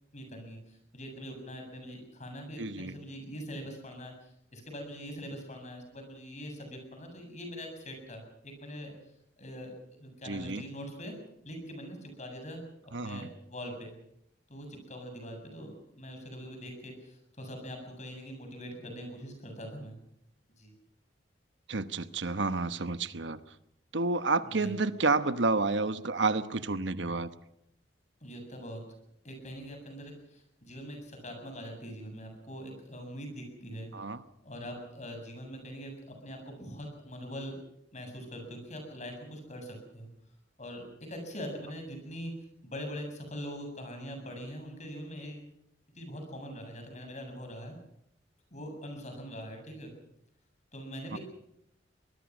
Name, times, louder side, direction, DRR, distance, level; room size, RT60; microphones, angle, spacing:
voice 1, 0.1-4.1 4.5-8.9 9.4-11.2 11.4-13.9 14.5-20.0 20.6-20.7 24.4-24.7 28.2-28.8 29.2-33.9 34.4-35.9 36.2-37.6 37.9-40.1 40.6-42.3 42.6-45.4 46.0-47.8 48.5-49.9 50.7-51.2, equal, 40° left, 4 dB, 7.5 m, -43 dB
voice 2, 2.6-3.0 10.2-10.7 12.9-13.3 21.7-23.4 23.9-27.3 33.9-34.2 51.1-51.2, right 3 dB, 80° right, 12 dB, 1.1 m, -30 dB
24.0 x 20.5 x 6.2 m, 0.78 s
head